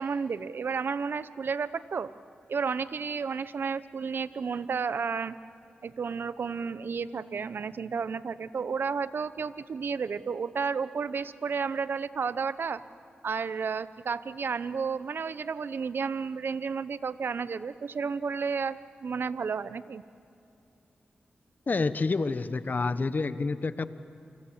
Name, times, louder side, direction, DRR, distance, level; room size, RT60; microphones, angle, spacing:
voice 1, 0.0-2.1 2.5-5.4 5.8-12.8 13.2-20.0, right 5 dB, 70° right, 15 dB, 0.8 m, -32 dB
voice 2, 21.7-23.9, left 3 dB, 50° left, 13 dB, 1.2 m, -28 dB
28.5 x 24.5 x 7.4 m, 2.6 s
cardioid pair, 50°, 4 cm